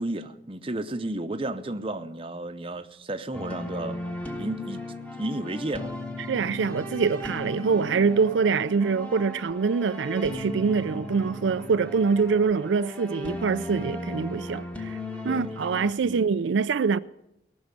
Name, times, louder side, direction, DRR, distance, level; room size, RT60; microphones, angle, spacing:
voice 1, 0.0-4.0 4.4-4.8 5.2-5.9 15.3-15.6 16.0-16.3, right 1 dB, 30° right, 0.7 m, -32 dB
sound 1, 3.3-15.9, left 1 dB, 10° left, 1.2 m, -36 dB
voice 2, 6.3-15.0 15.2-17.0, right 5 dB, 85° right, 0.4 m, -24 dB
18.5 x 6.3 x 9.7 m
head